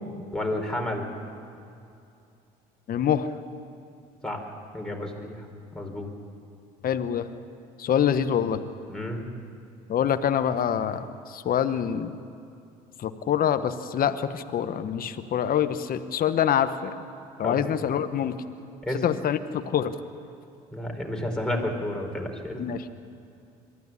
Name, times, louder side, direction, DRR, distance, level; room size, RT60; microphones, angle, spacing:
voice 1, 0.3-1.1 4.2-4.4 4.7-5.3 5.7-6.1 8.9-9.2 17.4-17.6 18.8-19.0 20.7-22.6, left 1 dB, 5° left, 1 dB, 4.6 m, -30 dB
voice 2, 2.9-3.3 6.8-7.3 7.8-8.6 9.9-12.2 13.0-16.9 17.4-18.4 19.0-20.0 22.6-22.8, left 9 dB, 55° left, 10 dB, 1.2 m, -25 dB
22.5 x 14.0 x 9.8 m, 2.6 s
supercardioid pair, 70°, 18 cm